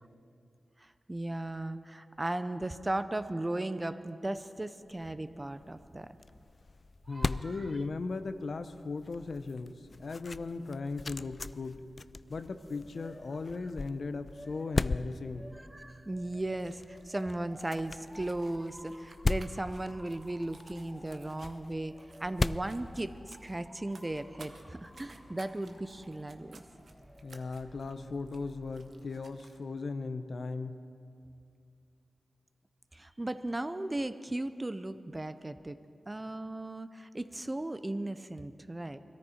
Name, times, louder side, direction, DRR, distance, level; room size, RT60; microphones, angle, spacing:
voice 1, 0.8-6.1 7.1-7.7 15.6-21.9 22.2-26.6 32.9-35.8 36.1-39.0, right 1 dB, 20° right, 11 dB, 0.6 m, -36 dB
sound 1, 4.9-23.7, left 3 dB, 45° left, 0.3 m, -39 dB
voice 2, 7.1-11.8 12.3-15.5 27.2-30.8, left 3 dB, 65° left, 9 dB, 0.7 m, -37 dB
Motor vehicle (road) / Siren, 12.4-29.2, equal, 5° left, 2.0 m, -55 dB
sound 2, 16.4-29.6, right 3 dB, 70° right, 1.1 m, -59 dB
21.5 x 13.5 x 4.4 m, 2.5 s
cardioid pair, 70°, 0 cm